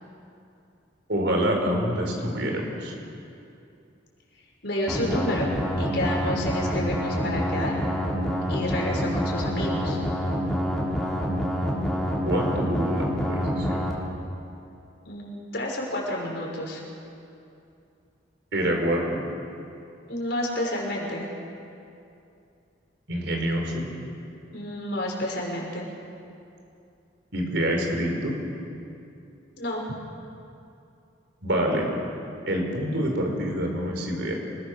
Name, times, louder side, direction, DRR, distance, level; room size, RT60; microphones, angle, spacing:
voice 1, 1.1-2.9 12.2-13.9 18.5-19.2 23.1-23.9 27.3-28.4 31.4-31.9 32.5-34.3, equal, 65° right, 1 dB, 5.1 m, -26 dB
voice 2, 4.6-5.5 5.8-7.8 8.5-10.0 15.1-16.8 20.1-21.3 24.5-25.8 29.6-30.0, left 1 dB, 60° left, -2 dB, 6.1 m, -30 dB
sound 1, 4.9-13.9, equal, ahead, 4.1 m, -27 dB
27.5 x 21.0 x 6.9 m, 2.6 s
head